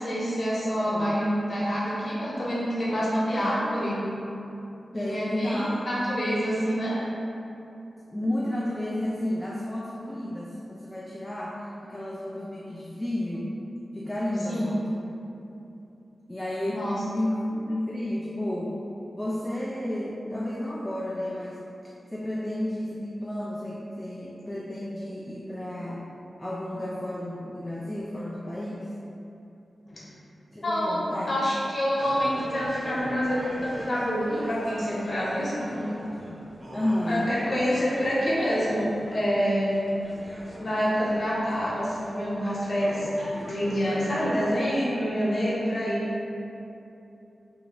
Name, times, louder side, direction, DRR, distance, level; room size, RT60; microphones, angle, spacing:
voice 1, 0.0-4.0 4.9-7.0 14.5-14.7 16.7-16.9 29.9-30.0 30.6-35.9 37.1-39.8 40.6-46.0, equal, 45° left, -7 dB, 0.9 m, -27 dB
voice 2, 0.8-1.2 4.9-5.8 8.1-13.5 13.9-15.0 16.3-16.9 17.1-18.8 19.1-21.6 22.1-26.0 26.4-28.9 30.5-31.4 36.7-37.3 45.8-45.9, left 1 dB, 10° left, -5 dB, 0.3 m, -31 dB
sound 1, 32.0-44.7, equal, 30° right, 0.7 m, -42 dB
2.8 x 2.6 x 4.3 m, 2.8 s
wide cardioid pair, 135°, 0 cm